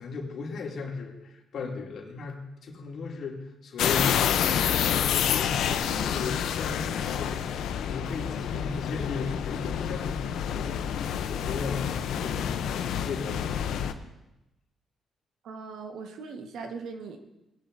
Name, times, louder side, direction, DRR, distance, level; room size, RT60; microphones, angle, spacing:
voice 1, 0.0-4.6 5.0-12.7 13.0-13.9, left 4 dB, 65° left, -1 dB, 2.8 m, -37 dB
sound 1, 3.8-13.9, left 8 dB, 80° left, 0.7 m, -28 dB
voice 2, 15.4-17.2, right 4 dB, 75° right, 4 dB, 1.4 m, -39 dB
20.0 x 10.5 x 2.7 m, 0.94 s
cardioid pair, 90°, 0 cm